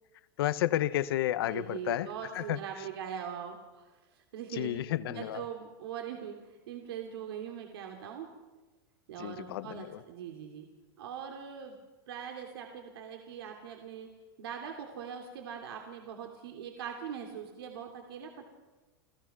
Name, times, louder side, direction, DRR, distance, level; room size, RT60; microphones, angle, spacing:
voice 1, 0.4-2.1 2.3-2.6 4.6-5.4 9.2-9.9, left 13 dB, 80° left, 15 dB, 1.0 m, -31 dB
voice 2, 1.4-8.3 9.1-10.7 11.0-11.8 12.1-18.4, right 8 dB, 90° right, 3 dB, 3.0 m, -42 dB
29.0 x 16.5 x 6.1 m, 1.2 s
supercardioid pair, 160°, 12 cm